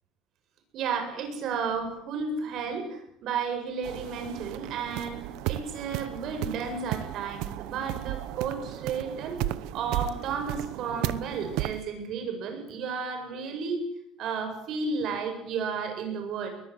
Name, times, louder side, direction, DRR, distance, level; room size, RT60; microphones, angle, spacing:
voice 1, 0.7-9.5 9.7-13.8 14.2-16.5, right 5 dB, 55° right, 5 dB, 8.0 m, -33 dB
sound 1, 3.8-11.8, right 15 dB, 80° right, 1.0 m, -34 dB
23.0 x 21.0 x 8.3 m, 0.75 s
cardioid pair, 140°, 0 cm